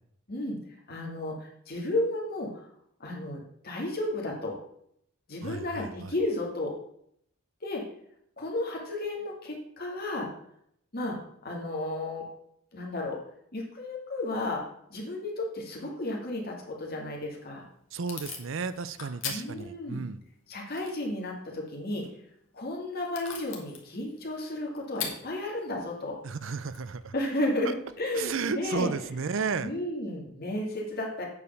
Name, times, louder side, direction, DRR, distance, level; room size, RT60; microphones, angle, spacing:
voice 1, 0.9-2.5 3.0-4.6 5.3-6.7 7.6-7.8 8.4-10.3 10.9-12.3 12.7-13.2 13.5-14.6 14.9-17.6 19.3-20.1 20.5-22.1 22.5-26.2 27.1-28.9 29.6-31.3, left 1 dB, 45° left, -1 dB, 2.2 m, -33 dB
voice 2, 5.4-6.1 17.9-20.2 26.2-27.1 27.6-27.7 28.1-29.7, right 5 dB, 65° right, 14 dB, 0.5 m, -33 dB
Packing tape duct tape / Tearing, 17.2-28.0, left 6 dB, 60° left, 1.8 m, -44 dB
8.4 x 4.9 x 6.6 m, 0.70 s
head